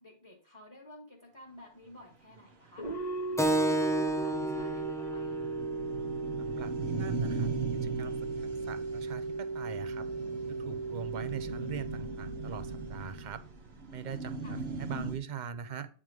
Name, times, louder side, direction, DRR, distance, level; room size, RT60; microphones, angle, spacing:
voice 1, 0.0-5.6 14.4-14.6, left 1 dB, 30° left, 0 dB, 1.7 m, -53 dB
sound 1, 2.5-2.6 2.9-3.0 3.3-3.4 3.6-15.2, right 4 dB, 80° right, 1.3 m, -39 dB
sound 2, 2.8-13.5, right 2 dB, 45° left, 1.5 m, -37 dB
Keyboard (musical), 3.4-8.5, right 2 dB, 5° left, 0.3 m, -33 dB
voice 2, 6.4-10.1 10.5-13.4 13.9-15.9, right 7 dB, 55° right, 11 dB, 0.7 m, -42 dB
9.0 x 3.7 x 4.7 m, 0.39 s
omnidirectional pair, 1.0 m